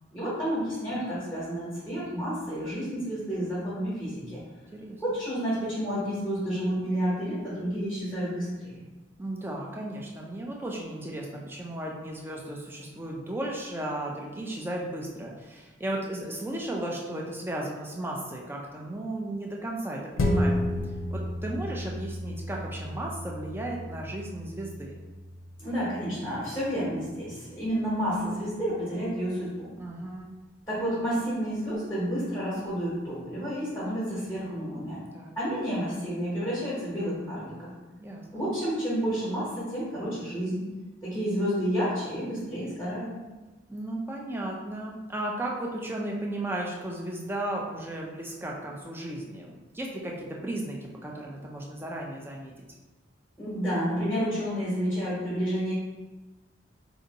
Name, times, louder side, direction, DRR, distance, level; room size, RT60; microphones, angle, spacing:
voice 1, 0.1-4.4 5.0-8.8 25.6-29.7 30.7-35.0 35.3-37.7 38.3-40.7 41.0-43.1 53.4-55.7, equal, 10° left, -10 dB, 0.9 m, -30 dB
voice 2, 9.2-20.6 21.1-25.0 29.8-30.3 35.1-35.3 38.0-38.2 43.7-52.5, right 1 dB, 10° right, -2 dB, 0.4 m, -35 dB
sound 1, 20.2-29.0 29.4-29.5, left 1 dB, 85° left, 0.5 m, -33 dB
2.6 x 2.6 x 3.9 m, 1.2 s
head